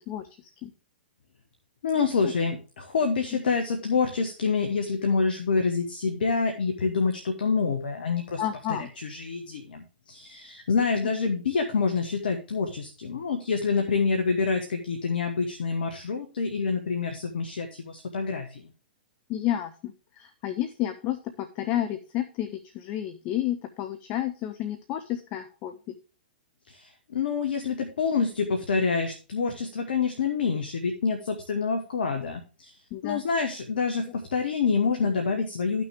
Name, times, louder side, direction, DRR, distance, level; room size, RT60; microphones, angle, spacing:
voice 1, 1.8-8.4 8.7-18.6 26.7-32.7 33.0-35.8, left 5 dB, 70° left, 5 dB, 1.6 m, -27 dB
voice 2, 8.4-8.9 19.3-25.7 27.5-27.6 32.9-33.2, left 12 dB, 35° left, 8 dB, 1.0 m, -31 dB
13.0 x 6.2 x 3.5 m, 0.35 s
hypercardioid pair, 115°, 5 cm